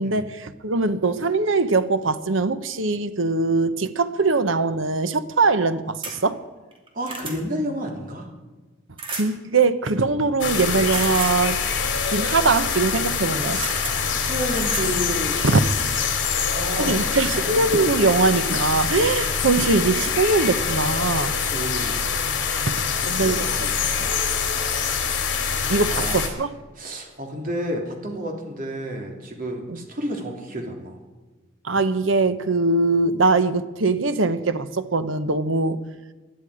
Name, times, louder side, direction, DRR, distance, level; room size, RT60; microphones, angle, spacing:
voice 1, 0.0-6.4 9.1-11.6 12.1-13.6 15.4-15.6 16.8-21.3 22.7-23.5 24.0-24.1 25.7-26.5 29.7-29.8 31.6-35.8, right 3 dB, 80° right, 1.0 m, -22 dB
sound 1, 6.0-6.2 6.7-7.4 9.0-9.3 10.9-11.4 13.1-13.3 13.6-14.0 14.6-14.9 15.4-15.9 17.0-17.1 17.4-17.5, right 3 dB, 25° right, 2.7 m, -32 dB
voice 2, 6.9-8.3 13.5-15.5 16.5-17.7 21.2-22.0 23.2-23.8 25.9-26.3 26.8-31.0, equal, 45° right, 3.3 m, -31 dB
sound 2, 10.4-26.3, left 6 dB, 65° left, 2.9 m, -25 dB
20.5 x 12.5 x 5.0 m
head